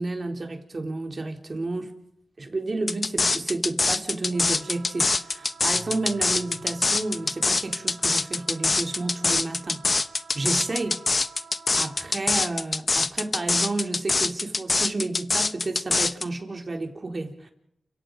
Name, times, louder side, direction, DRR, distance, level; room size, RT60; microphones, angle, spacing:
voice 1, 0.0-1.9 2.4-9.8 10.3-11.0 11.8-17.5, right 2 dB, 45° right, 4 dB, 4.0 m, -31 dB
sound 1, 2.9-16.2, left 3 dB, 45° left, 1.0 m, -24 dB
Wind instrument woodwind instrument, 4.3-12.1, right 5 dB, 90° right, 4.1 m, -49 dB
Keyboard (musical), 5.7-8.8, left 3 dB, 25° left, 5.0 m, -50 dB
29.0 x 17.0 x 5.5 m, 0.73 s
cardioid pair, 55°, 0 cm